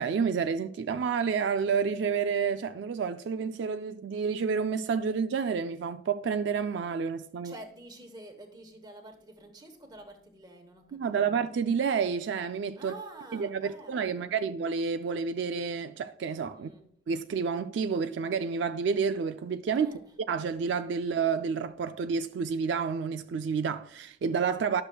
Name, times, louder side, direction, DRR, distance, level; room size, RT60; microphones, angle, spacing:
voice 1, 0.0-7.5 10.9-12.9 13.3-16.7 17.1-24.8, right 6 dB, 70° right, 0.3 m, -29 dB
voice 2, 7.4-11.4 12.8-14.3 16.5-16.9 19.8-20.0, right 2 dB, 25° right, 1.1 m, -48 dB
11.5 x 6.5 x 2.3 m
head